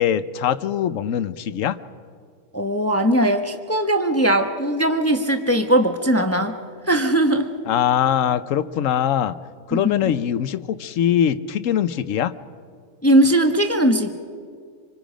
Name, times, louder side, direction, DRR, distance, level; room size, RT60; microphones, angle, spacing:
voice 1, 0.0-1.8 7.7-9.4 9.7-12.3, left 9 dB, 70° left, 13 dB, 1.1 m, -22 dB
voice 2, 2.5-6.6 6.9-7.5 9.7-10.0 13.0-14.1, right 1 dB, 10° left, 6 dB, 0.9 m, -19 dB
26.5 x 26.0 x 5.1 m, 2.1 s
omnidirectional pair, 1.5 m